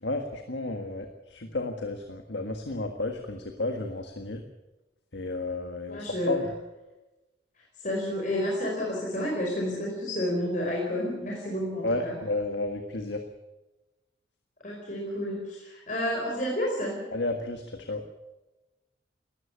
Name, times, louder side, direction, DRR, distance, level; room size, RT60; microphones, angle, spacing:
voice 1, 0.0-4.4 5.1-6.5 11.8-13.2 17.1-18.0, left 2 dB, 75° left, 5 dB, 1.7 m, -32 dB
voice 2, 5.9-6.5 7.8-12.2 14.6-17.1, left 1 dB, 45° left, -2 dB, 4.9 m, -30 dB
19.0 x 14.0 x 9.9 m, 1.1 s
head